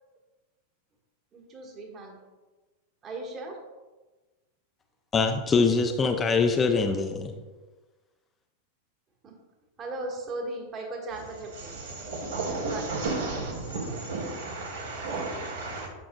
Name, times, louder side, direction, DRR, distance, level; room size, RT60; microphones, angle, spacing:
voice 1, 1.3-2.2 3.0-3.5 9.2-9.3 9.8-11.7 12.6-12.9, right 2 dB, 30° right, 0 dB, 1.4 m, -37 dB
voice 2, 5.1-7.3, left 4 dB, 20° left, 5 dB, 0.5 m, -23 dB
voice 3, 11.6-15.9, right 3 dB, 65° right, -1 dB, 1.7 m, -33 dB
8.5 x 6.0 x 2.2 m, 1.2 s
figure-of-eight pair, 90°, 0 cm